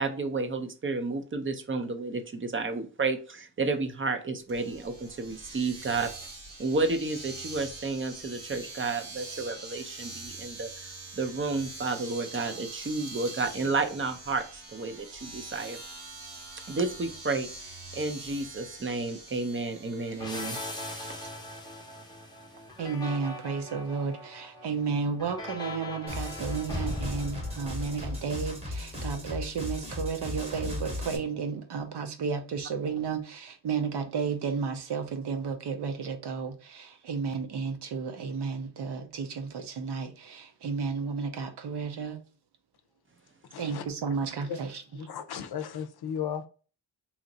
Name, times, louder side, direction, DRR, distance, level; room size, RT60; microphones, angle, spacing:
voice 1, 0.0-6.1 6.6-10.9 11.2-15.8 16.7-20.6, right 3 dB, 30° right, 0.5 m, -31 dB
Domestic sounds home sounds, 4.5-21.3, right 2 dB, 85° right, 1.6 m, -44 dB
sound 1, 20.2-28.7, left 2 dB, 10° left, 0.7 m, -40 dB
voice 2, 22.8-42.2 43.6-44.8, right 5 dB, 70° right, 0.7 m, -33 dB
sound 2, 26.1-31.2, left 2 dB, 15° right, 0.9 m, -36 dB
voice 3, 43.5-43.8 44.4-44.6 44.9-46.5, left 8 dB, 60° left, 0.6 m, -35 dB
2.9 x 2.4 x 3.8 m
wide cardioid pair, 115°, 43 cm